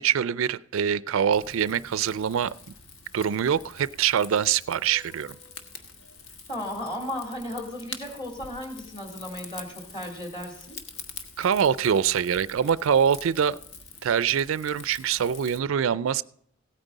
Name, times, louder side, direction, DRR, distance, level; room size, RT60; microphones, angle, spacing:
voice 1, 0.0-2.5 3.1-5.4 11.4-13.6 14.0-16.2, right 8 dB, 70° right, 0.4 m, -24 dB
Rain / Fire, 1.3-15.6, left 4 dB, 70° left, 1.4 m, -45 dB
voice 2, 6.5-10.8, left 1 dB, 25° left, 3.1 m, -35 dB
16.5 x 9.0 x 4.0 m
head